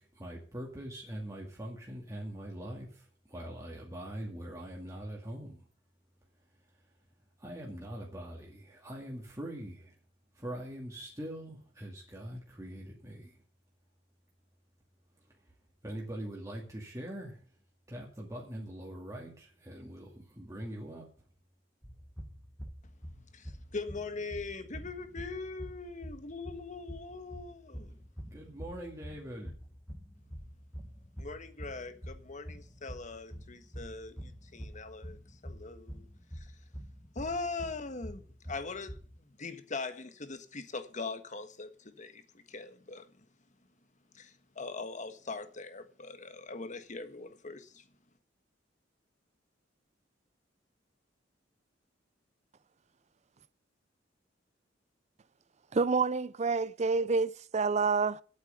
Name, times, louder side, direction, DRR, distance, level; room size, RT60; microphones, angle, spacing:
voice 1, 0.0-5.6 7.4-9.9 10.3-13.4 15.8-17.4 17.9-21.1 28.3-29.6, right 1 dB, 15° right, 2.3 m, -43 dB
sound 1, 21.8-39.2, equal, 5° left, 1.5 m, -46 dB
voice 2, 23.3-28.0 31.2-36.1 36.3-36.5 37.1-39.0 39.4-42.2 42.5-43.2 44.1-47.8, left 3 dB, 40° left, 1.4 m, -41 dB
voice 3, 55.7-58.2, right 4 dB, 40° right, 0.5 m, -28 dB
8.5 x 8.2 x 8.9 m
head